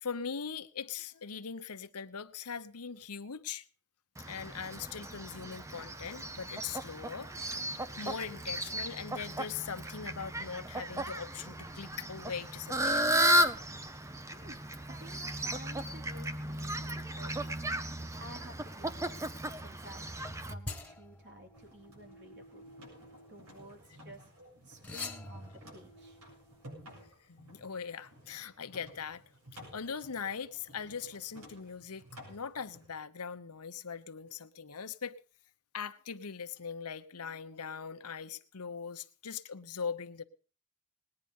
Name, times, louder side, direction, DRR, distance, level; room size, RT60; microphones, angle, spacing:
voice 1, 0.0-3.6 4.3-7.3 8.0-13.3 27.3-29.2 29.5-35.2 35.7-40.2, left 6 dB, 90° left, 1.0 m, -41 dB
Fowl, 4.2-20.5, right 1 dB, 15° right, 0.7 m, -34 dB
voice 2, 14.3-17.3 18.2-20.2 20.5-22.6 23.3-24.2 24.6-26.2, right 1 dB, 50° right, 3.3 m, -53 dB
sound 1, 20.2-24.0 24.8-27.1, left 2 dB, 5° left, 1.6 m, -47 dB
sound 2, 21.5-32.9, equal, 80° right, 7.6 m, -55 dB
19.5 x 9.9 x 5.5 m
head